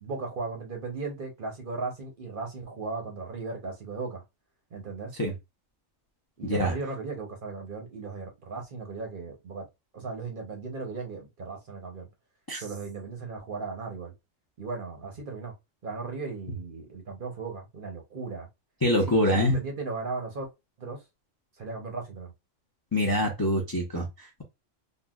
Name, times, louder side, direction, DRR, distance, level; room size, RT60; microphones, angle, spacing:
voice 1, 0.0-4.2 4.7-5.1 6.4-9.7 9.9-12.1 12.6-14.1 14.6-15.5 15.8-18.5 19.0-20.5 20.8-21.0 21.6-22.3, right 4 dB, 50° right, 0.8 m, -36 dB
voice 2, 6.4-6.7 12.5-12.6 18.8-19.6 22.9-24.4, left 1 dB, 25° left, 0.5 m, -25 dB
3.7 x 2.2 x 2.2 m
omnidirectional pair, 1.3 m